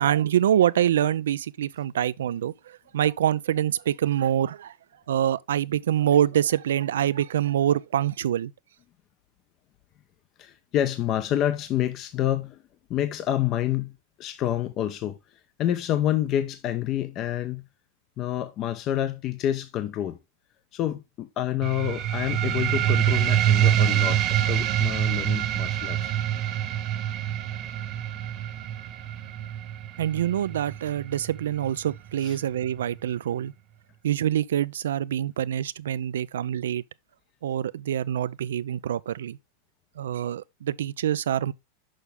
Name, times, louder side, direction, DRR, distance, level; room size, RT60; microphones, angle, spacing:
voice 1, 0.0-4.7 5.1-8.5 30.0-33.5 34.0-36.8 37.4-39.4 40.0-41.5, right 10 dB, 85° right, 0.4 m, -25 dB
voice 2, 10.4-12.6 12.9-13.9 14.2-15.2 15.6-17.6 18.2-20.2 20.7-26.1 32.2-32.4, left 11 dB, 40° left, 0.7 m, -28 dB
sound 1, 21.6-32.7, right 11 dB, 40° right, 1.1 m, -26 dB
6.4 x 5.6 x 3.3 m
hypercardioid pair, 120°, 0 cm